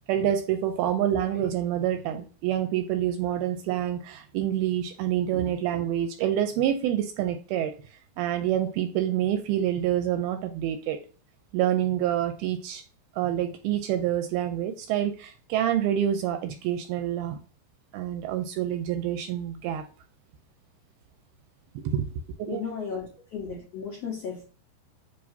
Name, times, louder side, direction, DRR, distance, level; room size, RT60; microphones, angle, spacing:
voice 1, 0.1-7.7 8.2-11.0 11.5-12.8 13.2-17.4 17.9-19.8 21.8-22.1 22.4-22.6, right 11 dB, 85° right, 2.2 m, -27 dB
voice 2, 22.5-24.5, left 6 dB, 85° left, 1.4 m, -35 dB
6.9 x 2.9 x 2.6 m
omnidirectional pair, 4.7 m